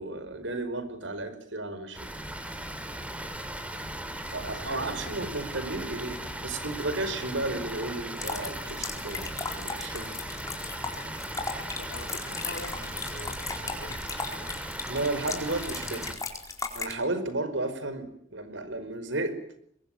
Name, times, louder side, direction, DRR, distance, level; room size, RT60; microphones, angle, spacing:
voice 1, 0.0-2.1 4.3-9.3 9.6-10.2 14.9-16.0 16.7-19.3, right 2 dB, 85° right, 12 dB, 5.1 m, -33 dB
Water, 1.9-16.2, right 1 dB, 5° right, 3.2 m, -38 dB
voice 2, 4.2-5.3 11.3-11.4 11.7-14.3, left 2 dB, 70° left, 7 dB, 3.7 m, -45 dB
sound 1, 8.2-16.9, left 4 dB, 20° left, 4.4 m, -37 dB
25.0 x 22.5 x 9.2 m, 0.69 s
head